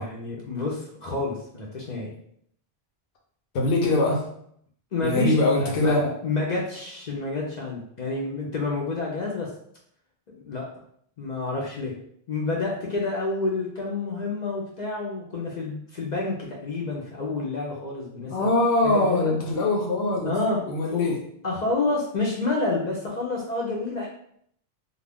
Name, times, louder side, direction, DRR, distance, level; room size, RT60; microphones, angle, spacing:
voice 1, 0.0-2.1 4.9-9.5 10.3-10.7 11.2-11.9 12.3-18.5 18.8-19.3 20.2-20.6 20.9-21.1 21.4-24.1, left 3 dB, 55° left, -3 dB, 0.6 m, -29 dB
voice 2, 3.5-4.2 5.0-6.1 18.3-20.3 20.7-21.2, left 2 dB, 85° left, -1 dB, 0.9 m, -22 dB
2.3 x 2.2 x 3.4 m, 0.68 s
omnidirectional pair, 1.0 m